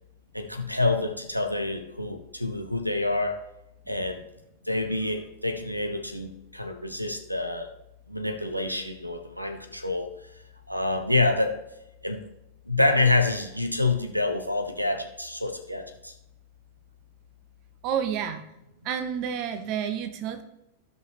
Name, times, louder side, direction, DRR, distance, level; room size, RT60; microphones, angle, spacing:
voice 1, 0.3-3.4 3.9-4.2 4.6-7.7 8.1-10.1 10.7-11.6 12.0-12.2 12.6-16.1, left 2 dB, 90° right, 7 dB, 0.9 m, -27 dB
voice 2, 17.8-18.4 18.8-20.4, right 8 dB, 40° right, 10 dB, 0.7 m, -29 dB
15.5 x 5.4 x 3.0 m, 0.86 s
figure-of-eight pair, 90°, 0 cm